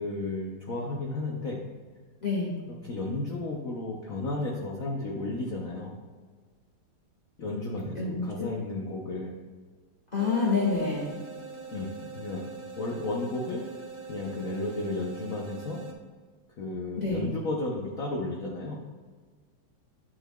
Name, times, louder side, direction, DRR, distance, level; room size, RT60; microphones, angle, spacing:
voice 1, 0.0-1.7 2.8-6.0 7.4-9.3 11.7-12.5 12.8-13.8 14.1-15.8 16.6-18.8, left 2 dB, 60° left, -2 dB, 0.9 m, -33 dB
voice 2, 2.2-2.5 8.0-8.5 10.1-11.1 17.0-17.3, left 4 dB, 25° left, -5 dB, 1.5 m, -27 dB
sound 1, 10.2-15.9, right 4 dB, 45° right, 0.5 m, -43 dB
9.6 x 6.0 x 2.2 m, 1.5 s
omnidirectional pair, 2.2 m